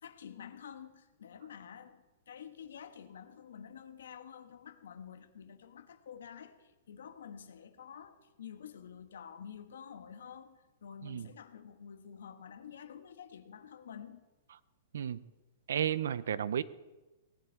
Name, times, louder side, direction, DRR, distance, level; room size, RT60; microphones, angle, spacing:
voice 1, 0.0-14.2, left 8 dB, 90° left, 10 dB, 1.3 m, -49 dB
voice 2, 15.7-16.6, right 9 dB, 80° right, 18 dB, 0.6 m, -32 dB
18.0 x 11.5 x 4.6 m, 1.1 s
hypercardioid pair, 175°, 0 cm